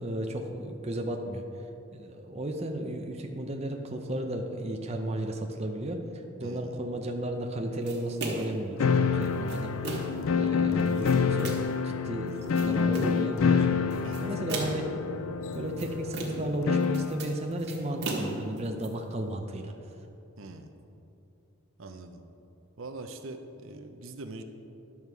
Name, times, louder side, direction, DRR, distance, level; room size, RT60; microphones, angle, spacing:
voice 1, 0.0-1.4 1.9-10.1 10.4-13.7 14.2-14.9 15.5-19.7, right 1 dB, 30° right, 3 dB, 0.6 m, -34 dB
voice 2, 6.4-6.8 14.0-14.2 20.4-20.7 21.8-22.2 22.8-24.4, right 2 dB, 70° right, 6 dB, 0.7 m, -43 dB
sound 1, 7.9-8.6 9.2-10.2 10.8-11.8 12.3-13.2 13.9-15.0 15.5-16.6 16.8-18.9, right 2 dB, 50° right, 1.5 m, -37 dB
sound 2, 8.8-17.2, left 5 dB, 70° left, 0.4 m, -27 dB
11.0 x 7.2 x 4.7 m, 2.8 s
head